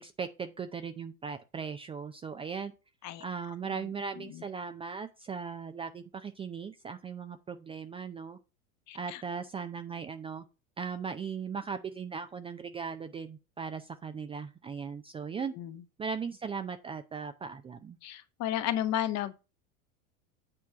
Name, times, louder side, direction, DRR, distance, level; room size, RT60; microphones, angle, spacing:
voice 1, 0.0-2.7 3.2-8.4 8.9-10.4 10.8-15.5 16.0-18.0, right 6 dB, 15° right, 0.5 m, -38 dB
voice 2, 8.9-9.2 15.6-15.8 18.0-19.3, left 11 dB, 40° left, 1.1 m, -33 dB
8.8 x 4.5 x 5.6 m
figure-of-eight pair, 85°, 42 cm